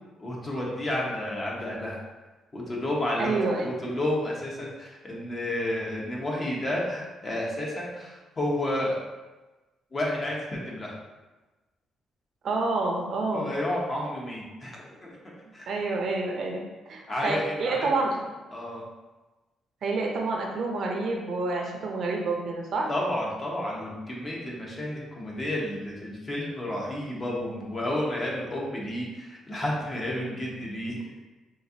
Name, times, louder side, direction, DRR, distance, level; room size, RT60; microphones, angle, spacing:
voice 1, 0.2-2.0 2.5-9.0 9.9-10.9 13.3-15.2 15.5-15.7 17.1-17.9 18.5-18.8 22.9-31.2, left 1 dB, 35° left, -3 dB, 0.9 m, -31 dB
voice 2, 3.2-3.7 12.4-13.5 15.7-18.2 19.8-22.9, right 3 dB, 60° right, 0 dB, 0.6 m, -28 dB
4.0 x 2.5 x 2.7 m, 1.2 s
cardioid pair, 90°, 0 cm